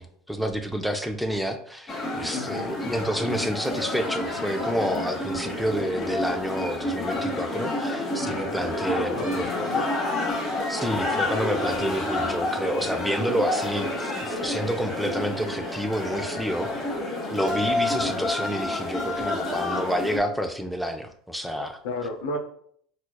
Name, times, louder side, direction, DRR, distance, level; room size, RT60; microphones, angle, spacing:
voice 1, 0.0-9.5 10.7-16.7 17.3-21.8, equal, ahead, 6 dB, 0.4 m, -29 dB
sound 1, 1.9-20.2, left 2 dB, 25° left, 1.0 m, -29 dB
voice 2, 2.3-2.8 8.7-9.9 21.8-22.4, left 2 dB, 80° left, 3 dB, 0.5 m, -32 dB
4.3 x 2.4 x 2.2 m, 0.64 s
supercardioid pair, 110°, 0 cm